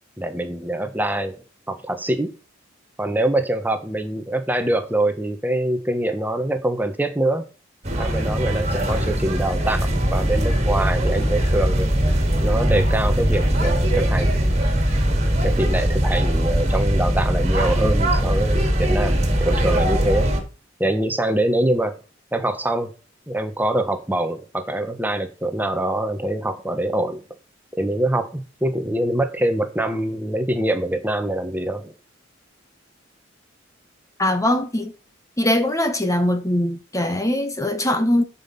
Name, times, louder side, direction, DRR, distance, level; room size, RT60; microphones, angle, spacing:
voice 1, 0.2-2.3 3.0-7.5 8.0-9.8 10.1-11.9 12.4-14.3 15.4-20.3 20.8-22.0 22.3-22.9 23.3-27.2 27.8-31.9, right 1 dB, 10° right, 1.2 m, -24 dB
sound 1, 7.9-20.4, right 1 dB, 35° right, 2.8 m, -20 dB
voice 2, 34.2-34.9 35.4-38.2, left 1 dB, 15° left, 1.0 m, -21 dB
11.5 x 5.6 x 5.7 m
head